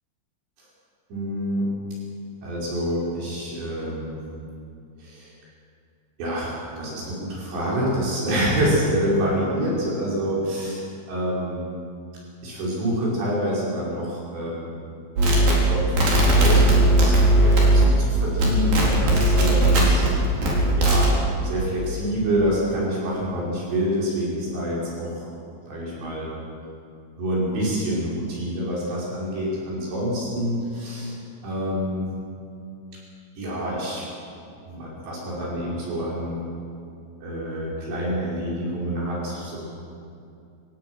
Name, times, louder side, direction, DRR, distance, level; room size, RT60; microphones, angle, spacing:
voice 1, 1.1-1.7 2.4-4.2 5.0-5.3 6.2-11.7 12.4-14.8 15.2-20.3 20.8-21.1 21.4-25.3 25.7-26.3 27.1-31.2 31.4-32.1 33.4-34.1 34.7-36.4 37.2-39.6, equal, 75° right, -6 dB, 7.4 m, -27 dB
sound 1, 15.2-18.1 18.4-20.1 20.4-21.1, right 1 dB, 55° right, 5.9 m, -17 dB
27.5 x 18.5 x 6.3 m, 2.5 s
omnidirectional pair, 5.0 m